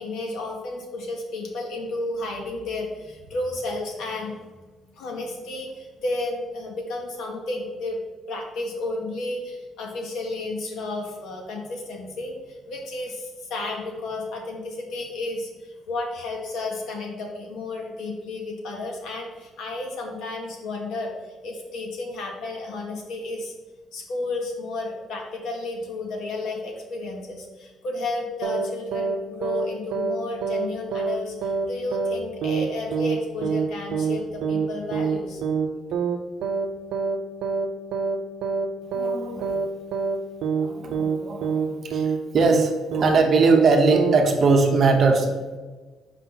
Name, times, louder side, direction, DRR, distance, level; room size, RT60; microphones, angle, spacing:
voice 1, 0.0-4.4 4.9-8.0 8.3-23.5 23.9-35.4, left 2 dB, 65° left, 1 dB, 1.4 m, -32 dB
sound 1, 28.4-28.7 28.9-29.2 29.4-29.7 29.9-30.2 30.4-30.7 30.9-31.2 31.4-31.7 31.9-32.2 32.4-32.7 32.9-33.2 33.4-33.7 33.9-34.2 34.4-34.7 34.9-35.2 35.4-35.7 35.9-36.2 36.4-36.7 36.9-37.2 37.4-37.7 37.9-38.2 38.4-38.7 38.9-39.2 39.4-39.7 39.9-40.2 40.4-40.7 40.9-41.2 41.4-41.7 41.9-42.2 42.4-42.7 42.9-43.2 43.4-43.7 43.9-44.2, right 5 dB, 75° right, 0.5 m, -25 dB
voice 2, 38.9-39.6 40.6-45.6, right 4 dB, 40° right, 3 dB, 0.8 m, -21 dB
5.7 x 4.9 x 3.9 m, 1.3 s
cardioid pair, 160°, 0 cm